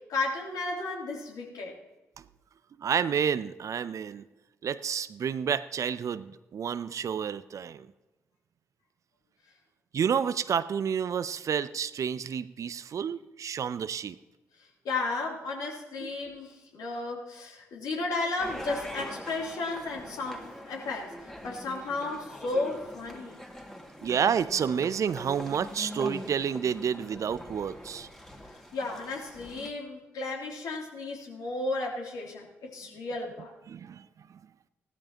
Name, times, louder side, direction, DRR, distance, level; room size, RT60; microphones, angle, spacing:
voice 1, 0.1-1.7 14.8-21.1 21.4-23.4 28.4-33.5, left 3 dB, 65° left, -1 dB, 2.9 m, -34 dB
voice 2, 2.8-4.2 4.6-7.9 9.9-14.2 16.0-16.1 24.0-28.1 33.7-34.1, right 7 dB, 50° right, 15 dB, 0.5 m, -30 dB
sound 1, 18.4-29.7, equal, 5° left, 2.1 m, -43 dB
17.5 x 13.5 x 2.9 m, 1.1 s
hypercardioid pair, 40°, 7 cm